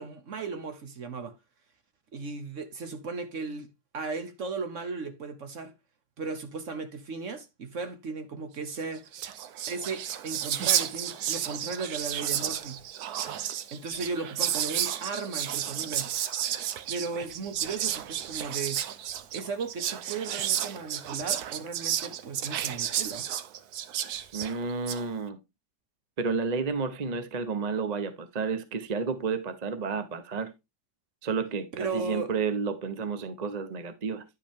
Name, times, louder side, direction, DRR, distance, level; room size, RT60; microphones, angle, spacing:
voice 1, 0.0-1.3 2.1-3.7 3.9-5.7 6.2-9.1 9.7-12.8 13.7-16.1 16.9-18.8 19.3-23.3 31.7-32.3, right 4 dB, 50° right, 1.2 m, -36 dB
Whispering, 8.8-8.9 9.1-25.0, right 10 dB, 70° right, 1.1 m, -32 dB
voice 2, 24.3-25.4 26.2-30.5 31.2-34.2, right 5 dB, 35° right, 0.7 m, -31 dB
10.0 x 5.3 x 3.5 m
omnidirectional pair, 1.9 m